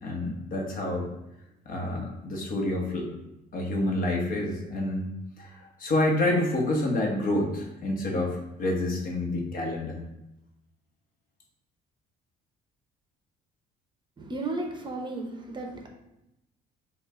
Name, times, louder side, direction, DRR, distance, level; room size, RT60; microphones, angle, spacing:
voice 1, 0.0-1.1 1.7-3.1 3.5-10.0, left 1 dB, 55° left, 0 dB, 1.1 m, -28 dB
voice 2, 14.2-15.9, right 2 dB, 25° right, 2 dB, 0.7 m, -34 dB
5.3 x 2.4 x 3.6 m, 0.89 s
cardioid pair, 110°, 17 cm